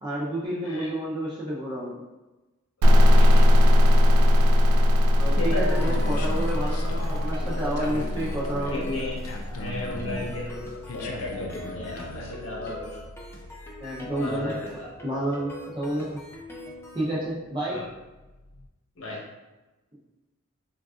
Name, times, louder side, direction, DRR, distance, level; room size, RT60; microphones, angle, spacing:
voice 1, 0.0-2.0 5.4-8.9 13.8-14.6 15.0-16.2 16.9-17.9, right 1 dB, 20° right, -6 dB, 0.6 m, -30 dB
voice 2, 2.8-3.5 5.2-6.5 7.3-7.9 8.7-9.2 9.6-13.0 14.2-14.9 17.7-17.9 19.0-19.2, left 2 dB, 65° left, -3 dB, 0.8 m, -35 dB
sound 1, 2.8-10.4, left 1 dB, 80° right, 0.3 m, -20 dB
sound 2, 5.7-17.1, left 1 dB, 10° left, 0.3 m, -43 dB
sound 3, 5.8-18.7, left 2 dB, 80° left, 0.4 m, -41 dB
3.9 x 2.3 x 2.4 m, 1.1 s
head